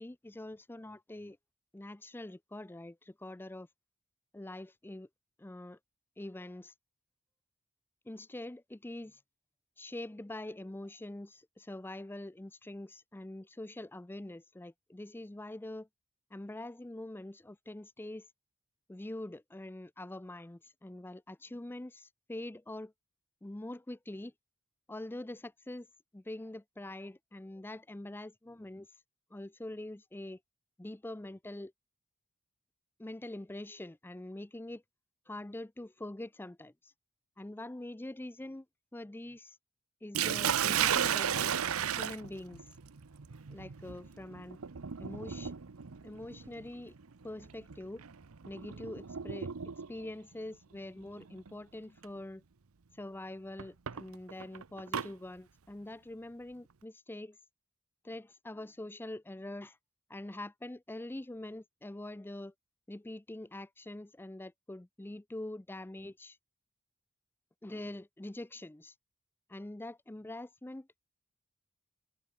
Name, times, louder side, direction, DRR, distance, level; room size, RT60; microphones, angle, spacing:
voice 1, 0.0-1.4 1.7-3.7 4.3-5.1 5.4-5.8 6.2-6.7 8.1-9.2 9.8-15.9 16.3-18.3 18.9-22.9 23.4-24.3 24.9-25.9 26.1-28.9 29.3-30.4 30.8-31.7 33.0-34.8 35.3-36.9 37.4-38.7 38.9-39.6 40.0-42.7 43.5-44.6 45.0-45.5 46.0-46.9 47.2-48.0 48.5-49.5 49.9-52.4 52.9-57.4 58.0-59.8 60.1-62.5 62.9-66.4 67.6-68.9 69.5-70.9, left 1 dB, 10° left, 0.5 m, -44 dB
Sink (filling or washing), 40.1-50.1 51.2-51.5 52.0-52.1 53.6-55.1, right 8 dB, 85° right, 0.8 m, -35 dB
head